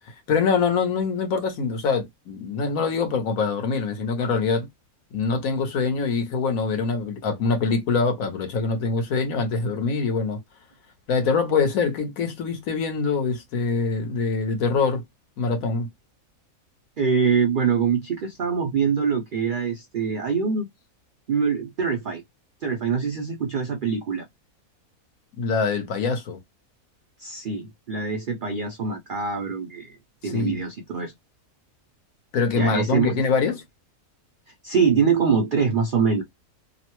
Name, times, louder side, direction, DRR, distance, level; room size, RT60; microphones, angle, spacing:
voice 1, 0.1-4.7 5.1-10.4 11.1-15.0 15.4-15.9 25.4-26.4 30.2-30.6 32.3-33.6, left 4 dB, 75° left, 1.3 m, -24 dB
voice 2, 17.0-20.7 21.3-22.2 22.6-24.3 27.2-30.0 30.2-31.1 32.5-33.5 34.6-36.2, right 6 dB, 70° right, 0.4 m, -24 dB
2.9 x 2.1 x 2.9 m
omnidirectional pair, 1.5 m